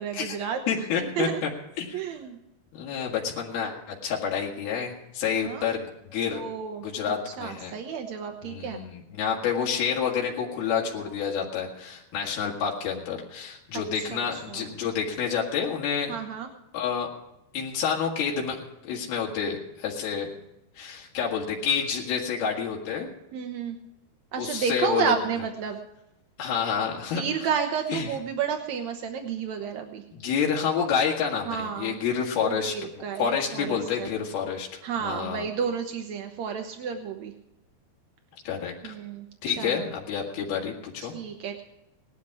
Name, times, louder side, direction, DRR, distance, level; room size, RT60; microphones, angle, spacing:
voice 1, 0.0-1.4 1.9-2.4 5.4-5.7 6.3-8.8 13.9-14.8 16.1-16.5 23.3-23.8 24.3-25.8 27.1-30.0 31.4-32.0 32.4-34.1 34.8-37.3 38.8-39.9 41.0-41.6, right 7 dB, 70° right, 4 dB, 1.7 m, -31 dB
voice 2, 0.7-1.5 1.8-2.0 2.7-5.9 6.1-6.4 6.8-7.7 8.4-16.1 16.7-17.1 17.5-18.6 18.8-20.3 20.8-23.1 24.4-25.1 26.4-27.3 27.9-28.1 30.1-32.7 33.2-35.5 38.5-38.9 39.4-41.1, left 7 dB, 75° left, -2 dB, 4.0 m, -28 dB
18.5 x 11.5 x 4.8 m, 0.88 s
omnidirectional pair, 4.5 m